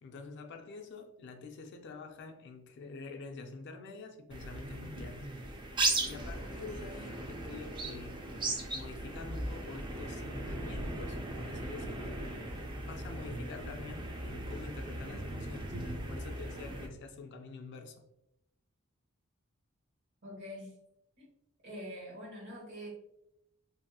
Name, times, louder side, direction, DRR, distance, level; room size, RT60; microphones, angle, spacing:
voice 1, 0.0-5.3 6.0-8.3 8.7-15.8 16.1-18.0, left 4 dB, 55° left, 0.4 m, -47 dB
sound 1, 4.3-16.9, right 2 dB, 20° right, 0.3 m, -37 dB
voice 2, 20.2-20.7 21.2-21.3 21.6-22.9, equal, 55° right, 1.2 m, -45 dB
2.7 x 2.6 x 2.2 m
head